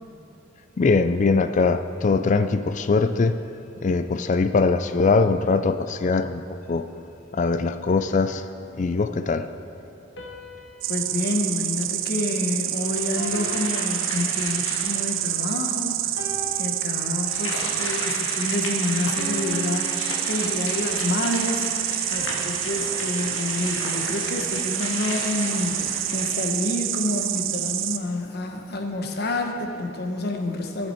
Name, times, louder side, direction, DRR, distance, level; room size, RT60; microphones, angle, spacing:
voice 1, 0.8-3.4 3.8-6.4 6.7-6.9 7.3-8.4 8.8-9.5, left 4 dB, 40° left, 11 dB, 0.4 m, -21 dB
sound 1, 7.9-9.2 10.2-12.7 13.2-14.9 15.4-15.7 16.2-17.7 18.2-18.5 19.2-21.1 22.2-24.5, right 1 dB, 70° left, 1.4 m, -42 dB
Insect, 10.8-28.0, right 12 dB, 90° right, 0.5 m, -28 dB
voice 2, 10.9-16.2 16.6-30.9, left 2 dB, 55° left, 3 dB, 1.1 m, -28 dB
sound 2, 12.7-15.3 15.8-15.9 17.2-27.0, left 2 dB, 90° left, 1.8 m, -34 dB
15.0 x 7.5 x 4.4 m, 3.0 s
head